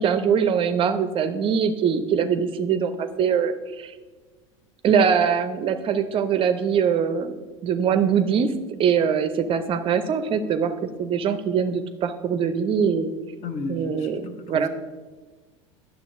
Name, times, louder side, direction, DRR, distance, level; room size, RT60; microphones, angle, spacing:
voice 1, 0.0-3.9 4.8-8.5 8.8-13.1 13.7-14.7, right 7 dB, 35° right, 10 dB, 0.4 m, -23 dB
voice 2, 13.4-14.7, left 3 dB, 40° left, 8 dB, 0.8 m, -34 dB
9.9 x 6.7 x 2.5 m, 1.3 s
hypercardioid pair, 80°, 17 cm